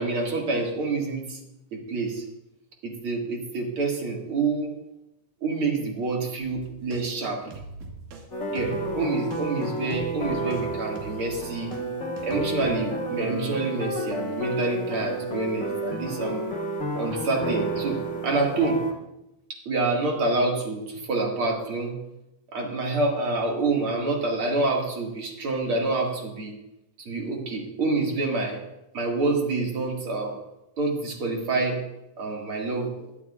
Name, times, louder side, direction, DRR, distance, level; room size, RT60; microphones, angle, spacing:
voice 1, 0.0-1.4 1.7-2.2 2.8-4.7 5.4-7.5 8.5-11.7 12.2-16.5 17.0-18.8 19.5-22.0 22.5-26.5 27.0-28.6 28.9-30.4 30.8-31.8 32.2-32.9, right 3 dB, 45° right, 0 dB, 2.6 m, -27 dB
sound 1, 6.4-11.8 12.2-12.7, right 3 dB, 85° right, 3.2 m, -42 dB
sound 2, 8.3-18.9, right 1 dB, 35° left, 1.2 m, -31 dB
21.5 x 11.5 x 2.5 m, 0.89 s
omnidirectional pair, 3.6 m